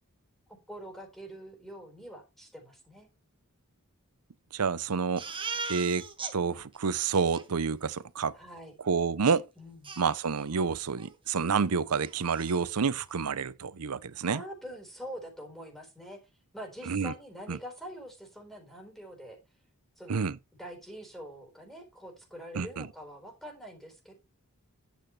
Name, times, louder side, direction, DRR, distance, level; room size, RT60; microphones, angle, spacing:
voice 1, 0.7-3.1 8.3-8.7 9.6-9.9 14.2-16.2 16.5-19.4 20.0-20.2 20.6-24.1, equal, ahead, 3.9 m, -44 dB
voice 2, 4.5-5.4 5.7-6.1 6.3-8.4 8.8-9.5 10.0-14.4 16.9-17.1 17.5-17.6 20.1-20.4 22.5-22.9, right 5 dB, 80° right, 0.7 m, -29 dB
Crying sobbing, 5.2-6.3 6.7-6.8 7.1-7.5 9.3-9.4 9.8-10.6 11.0-11.2 11.5-11.6 11.9-12.6, right 4 dB, 25° right, 1.8 m, -39 dB
10.5 x 8.2 x 3.3 m
head